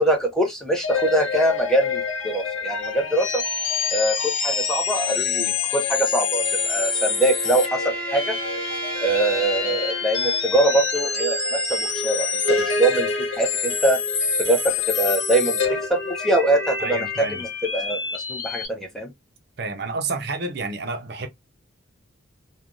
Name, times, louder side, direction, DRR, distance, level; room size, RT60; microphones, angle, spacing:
voice 1, 0.0-3.4 3.9-8.3 9.0-11.4 11.7-14.0 14.4-15.6 15.9-18.0 18.3-19.1, right 1 dB, ahead, 0.5 m, -23 dB
sound 1, 0.8-18.7, left 5 dB, 70° left, 1.0 m, -26 dB
sound 2, 5.8-10.6, right 2 dB, 25° right, 1.1 m, -35 dB
voice 2, 16.8-17.4 19.6-21.3, right 3 dB, 55° right, 0.6 m, -29 dB
3.2 x 2.2 x 2.4 m
head